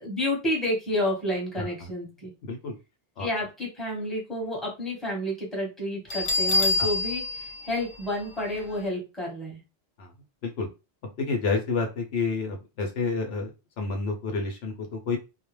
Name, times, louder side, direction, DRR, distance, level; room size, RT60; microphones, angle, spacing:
voice 1, 0.0-2.3 3.2-9.6, left 1 dB, ahead, -3 dB, 1.0 m, -30 dB
voice 2, 2.4-2.8 3.2-3.3 6.8-6.9 10.0-10.1 10.4-10.7 11.2-13.5 13.8-15.2, left 4 dB, 75° left, 3 dB, 0.9 m, -29 dB
Bell, 6.1-8.8, left 3 dB, 40° left, 0.5 m, -27 dB
2.3 x 2.1 x 3.1 m, 0.28 s
omnidirectional pair, 1.1 m